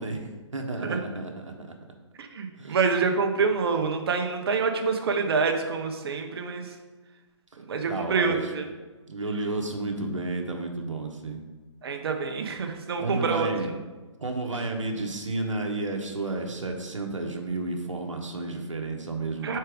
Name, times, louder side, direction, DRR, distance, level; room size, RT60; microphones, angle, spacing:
voice 1, 0.0-1.7 2.6-2.8 7.9-8.4 9.1-11.4 13.0-13.7 14.2-19.6, right 2 dB, 85° right, 3 dB, 1.1 m, -31 dB
voice 2, 2.2-6.8 7.6-8.7 11.8-13.5 19.4-19.6, right 5 dB, 55° right, 5 dB, 0.9 m, -27 dB
4.6 x 4.5 x 4.8 m, 1.3 s
figure-of-eight pair, 140°, 16 cm